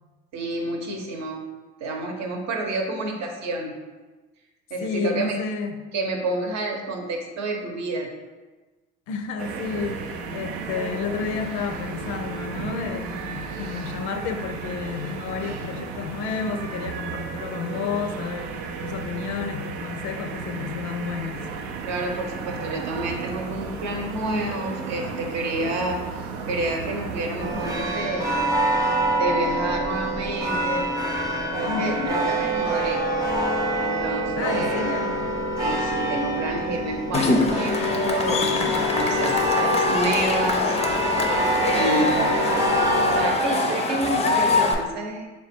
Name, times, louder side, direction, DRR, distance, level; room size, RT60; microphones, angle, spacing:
voice 1, 0.3-1.4 1.8-3.8 4.7-5.4 5.9-8.1 21.8-26.0 26.5-28.4 29.2-30.9 31.5-33.0 33.8-34.8 35.6-40.7 41.7-42.2 43.1-45.3, right 2 dB, 60° right, 2 dB, 0.8 m, -29 dB
voice 2, 4.8-5.8 9.1-21.5 31.7-32.2 34.4-35.3 41.8-42.3 44.1-44.2, left 6 dB, 75° left, 6 dB, 0.5 m, -31 dB
sound 1, 9.4-27.8, right 5 dB, 90° right, 0.5 m, -34 dB
sound 2, 27.4-43.3, right 1 dB, 10° right, 0.8 m, -25 dB
Cheering / Crowd, 37.1-44.7, left 3 dB, 20° left, 0.4 m, -24 dB
3.5 x 2.3 x 4.2 m, 1.2 s
supercardioid pair, 80°, 31 cm